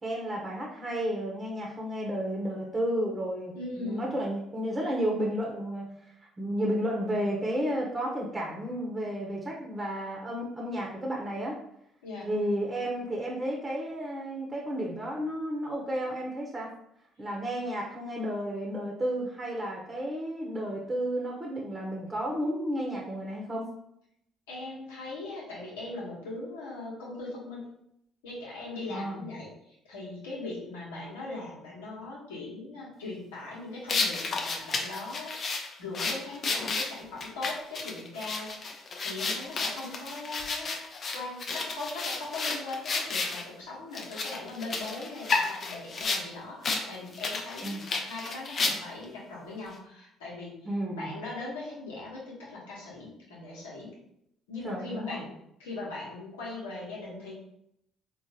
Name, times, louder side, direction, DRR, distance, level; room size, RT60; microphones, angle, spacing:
voice 1, 0.0-5.8 6.2-11.6 12.2-16.7 17.2-23.6 28.9-29.3 47.6-47.8 50.6-51.1 54.6-55.2, equal, 30° right, -2 dB, 0.8 m, -32 dB
voice 2, 3.5-4.1 12.0-12.3 24.5-27.6 28.2-40.8 41.1-50.6 50.9-53.9 54.5-55.3 55.6-57.3, left 2 dB, 85° left, -5 dB, 1.1 m, -40 dB
sound 1, 33.9-43.4 43.9-46.2 46.6-46.8 47.1-49.0, left 3 dB, 50° left, 0.6 m, -32 dB
3.7 x 2.4 x 2.8 m, 0.76 s
hypercardioid pair, 55°, 0 cm